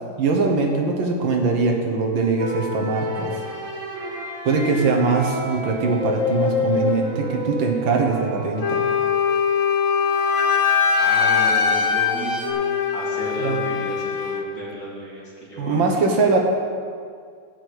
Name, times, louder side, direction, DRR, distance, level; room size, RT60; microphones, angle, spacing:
voice 1, 0.2-3.3 4.5-8.9 13.4-13.6 15.6-16.4, right 4 dB, 80° right, 2 dB, 1.9 m, -21 dB
sound 1, 2.4-9.5 10.1-12.5, left 2 dB, 40° right, 2.0 m, -29 dB
Wind instrument woodwind instrument, 8.6-14.5, left 7 dB, 90° left, 0.6 m, -21 dB
voice 2, 11.0-15.8, equal, 50° left, -6 dB, 2.8 m, -33 dB
12.0 x 4.6 x 8.0 m, 2.1 s
omnidirectional pair, 2.1 m